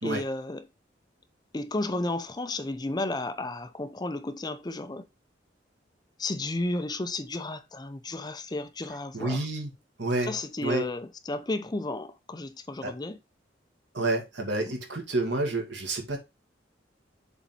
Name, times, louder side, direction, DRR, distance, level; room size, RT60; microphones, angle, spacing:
voice 1, 0.0-0.6 1.5-5.0 6.2-9.5 10.2-13.2 14.7-14.8, left 2 dB, 20° left, 0.6 m, -33 dB
voice 2, 9.1-9.7 10.0-10.3 10.6-10.9 12.8-12.9 13.9-16.2, right 2 dB, 70° right, 2.0 m, -29 dB
7.1 x 4.0 x 4.4 m
head